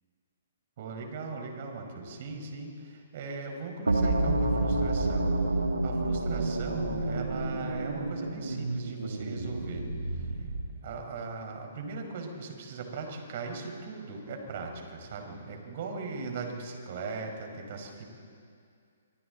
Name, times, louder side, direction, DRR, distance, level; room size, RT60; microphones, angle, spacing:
voice 1, 0.8-5.3 5.8-9.8 10.8-18.1, right 4 dB, 50° right, 3 dB, 4.8 m, -39 dB
sound 1, 3.9-10.8, right 2 dB, 85° right, 2.2 m, -29 dB
28.0 x 25.0 x 4.0 m, 2.3 s
figure-of-eight pair, 125°, 0 cm